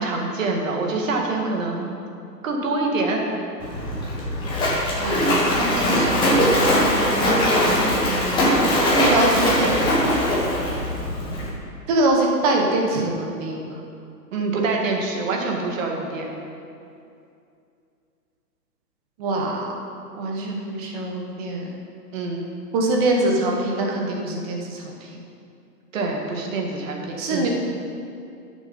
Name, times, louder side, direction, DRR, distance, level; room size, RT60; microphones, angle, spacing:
voice 1, 0.0-1.9 2.4-3.3 8.1-8.5 9.3-9.5 14.3-16.3 22.1-22.5 25.9-27.5, right 3 dB, 50° right, 1 dB, 1.9 m, -26 dB
Splash splatter, 3.6-11.5, left 1 dB, 10° left, 1.3 m, -21 dB
voice 2, 5.0-7.7 8.9-9.8 11.9-13.6 19.2-19.7 20.1-21.7 22.7-25.2 27.2-27.5, right 2 dB, 25° right, 0 dB, 1.2 m, -24 dB
11.5 x 6.4 x 5.5 m, 2.5 s
hypercardioid pair, 155°, 49 cm